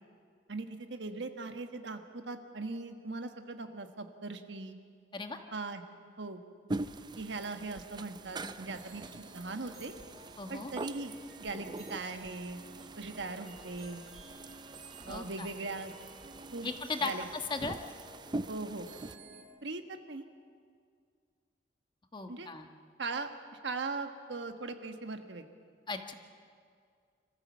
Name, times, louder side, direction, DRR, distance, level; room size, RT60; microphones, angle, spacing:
voice 1, 0.5-4.8 5.5-5.8 6.2-6.4 7.2-9.1 9.3-9.9 10.5-11.1 11.4-12.6 13.0-14.0 15.1-15.9 16.5-16.7 17.0-17.2 18.5-18.9 19.6-20.2 22.3-22.5 23.0-23.3 23.6-25.5, right 3 dB, 85° right, 7 dB, 1.4 m, -39 dB
sound 1, 6.7-19.2, right 2 dB, 25° right, 0.5 m, -44 dB
sound 2, 8.7-19.4, right 1 dB, 45° right, 3.5 m, -54 dB
voice 2, 10.4-10.7 15.1-15.5 16.6-17.1 17.5-17.8 22.1-22.6 25.9-26.1, left 4 dB, 25° left, 5 dB, 1.3 m, -37 dB
26.0 x 14.5 x 7.3 m, 2.2 s
head